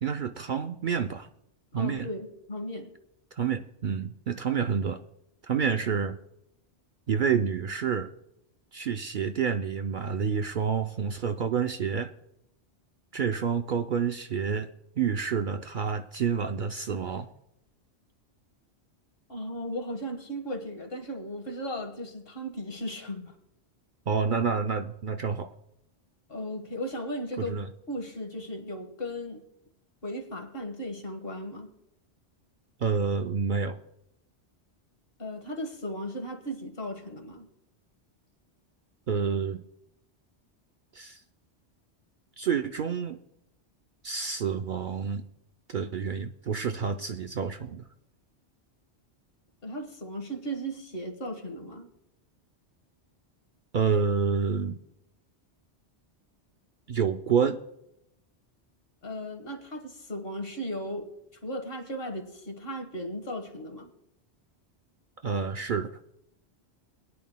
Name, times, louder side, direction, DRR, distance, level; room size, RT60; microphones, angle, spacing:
voice 1, 0.0-1.3 1.7-2.1 3.3-5.0 5.4-6.2 7.1-8.1 8.7-12.1 13.1-14.7 15.0-17.3 24.1-25.5 27.4-27.7 32.8-33.8 39.1-39.6 40.9-41.2 42.4-43.2 44.0-45.2 45.7-47.9 53.7-54.8 56.9-57.6 65.2-65.9, right 6 dB, 55° right, 7 dB, 0.6 m, -28 dB
voice 2, 1.8-2.9 19.3-23.3 26.3-27.6 27.9-29.4 30.0-31.7 35.2-37.5 49.6-51.9 59.0-61.1 61.4-63.9, equal, 55° left, 5 dB, 1.6 m, -36 dB
21.5 x 10.5 x 2.2 m, 0.81 s
omnidirectional pair, 1.1 m